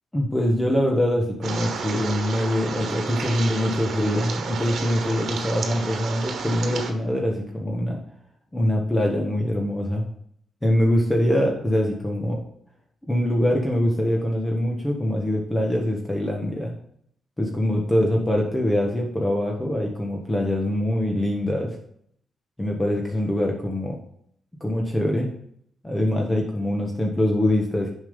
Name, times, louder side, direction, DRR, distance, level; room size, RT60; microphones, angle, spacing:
voice 1, 0.1-8.0 8.5-10.1 10.6-12.4 13.1-16.7 17.4-21.8 22.6-24.0 24.6-25.3 25.8-27.9, left 1 dB, 15° left, 0 dB, 1.4 m, -23 dB
sound 1, 1.4-6.9, right 5 dB, 70° right, 1.3 m, -31 dB
7.1 x 5.6 x 5.3 m, 0.67 s
cardioid pair, 95°, 0 cm